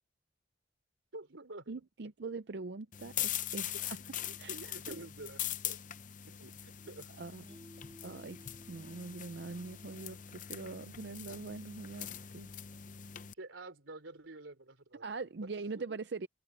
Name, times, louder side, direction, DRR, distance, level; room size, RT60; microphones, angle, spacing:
voice 1, 1.1-2.1 3.7-3.9 4.2-5.8 6.3-7.1 8.0-8.2 13.4-15.0 15.7-15.8, right 2 dB, 90° right, 3.5 m, -49 dB
voice 2, 1.7-4.0 4.4-5.1 7.2-7.6 8.0-8.4 8.7-12.5 15.0-16.3, right 3 dB, 60° right, 0.5 m, -43 dB
sound 1, 2.9-13.3, left 11 dB, 40° left, 0.7 m, -42 dB
Mallet percussion, 7.5-10.8, equal, 20° right, 2.3 m, -59 dB
open air
head